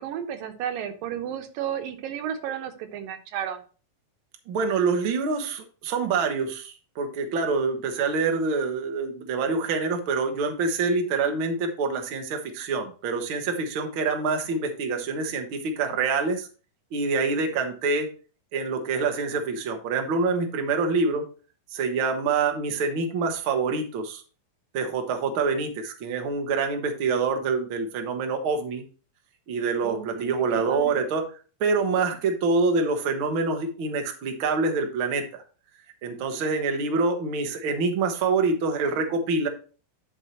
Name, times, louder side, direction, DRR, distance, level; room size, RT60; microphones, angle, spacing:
voice 1, 0.0-3.6 29.8-31.0, right 9 dB, 85° right, 7 dB, 2.7 m, -33 dB
voice 2, 4.5-16.5 16.9-18.1 18.5-21.2 21.7-24.2 24.7-28.8 29.5-31.2 31.6-35.4 36.0-39.5, right 4 dB, 55° right, 4 dB, 1.5 m, -26 dB
10.5 x 5.5 x 3.0 m, 0.37 s
omnidirectional pair, 3.9 m